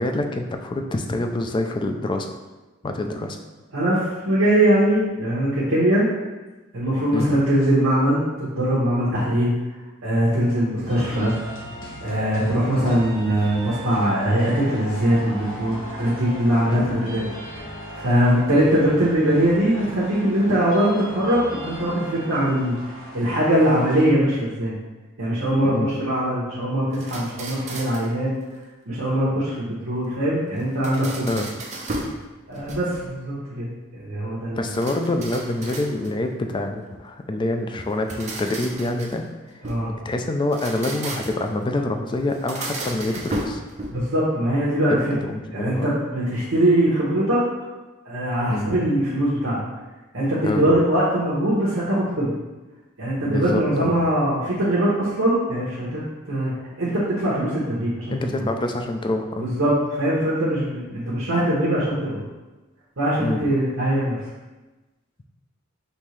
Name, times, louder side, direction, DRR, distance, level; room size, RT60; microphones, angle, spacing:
voice 1, 0.0-2.3 2.8-3.4 7.1-7.3 16.7-16.9 25.7-25.9 31.3-31.5 34.5-39.2 40.0-43.6 44.9-45.9 48.5-48.9 50.4-50.6 53.2-53.9 58.1-59.5 63.2-63.4, left 2 dB, 25° left, 5 dB, 0.3 m, -26 dB
voice 2, 3.7-6.1 6.7-9.5 10.0-11.3 12.0-17.2 17.5-22.8 23.1-24.8 25.2-28.3 28.9-31.3 32.5-34.7 39.6-39.9 43.9-45.0 45.5-47.4 48.1-49.6 50.1-52.3 53.0-56.0 56.3-56.5 56.8-58.2 59.4-62.2 63.0-64.2, right 1 dB, 75° right, -8 dB, 0.9 m, -21 dB
sound 1, 10.9-24.1, equal, 70° left, 1.2 m, -38 dB
sound 2, 26.9-28.2 30.6-32.2 32.6-33.2 34.6-36.3 37.9-39.9 40.4-41.5 42.3-44.2, right 2 dB, 35° right, 0.6 m, -34 dB
5.3 x 2.8 x 3.1 m, 1.2 s
head